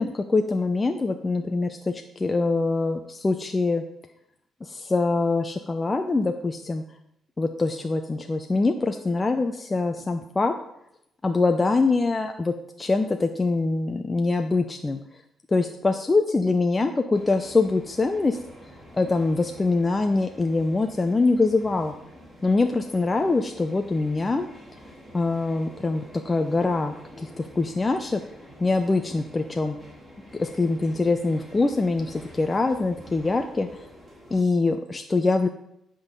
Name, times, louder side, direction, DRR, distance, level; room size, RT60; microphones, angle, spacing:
voice 1, 0.0-3.8 4.6-6.8 7.4-10.5 11.2-15.0 15.5-18.4 19.0-21.9 22.4-24.5 25.1-27.3 27.6-28.2 28.6-29.8 30.4-33.7 34.3-35.5, left 3 dB, 25° left, 5 dB, 0.6 m, -24 dB
sound 1, 17.1-34.4, equal, 10° right, 3.8 m, -47 dB
10.5 x 3.9 x 6.6 m, 0.79 s
cardioid pair, 90°, 0 cm